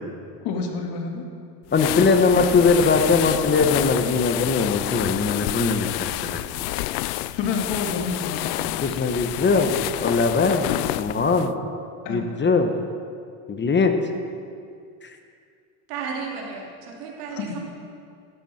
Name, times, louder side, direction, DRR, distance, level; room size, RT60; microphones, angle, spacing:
voice 1, 0.4-1.3 7.3-8.8 12.0-12.2 17.3-17.6, left 5 dB, 60° left, 3 dB, 2.2 m, -28 dB
sound 1, 1.7-11.5, left 17 dB, 85° left, 0.5 m, -28 dB
voice 2, 1.7-6.4 8.8-10.7 11.0-11.5 12.1-12.7 13.5-13.9 15.0-15.2, left 4 dB, 25° left, 6 dB, 1.2 m, -21 dB
voice 3, 15.9-17.6, right 5 dB, 85° right, -2 dB, 3.2 m, -33 dB
14.5 x 12.5 x 4.4 m, 2.3 s
supercardioid pair, 100°, 45 cm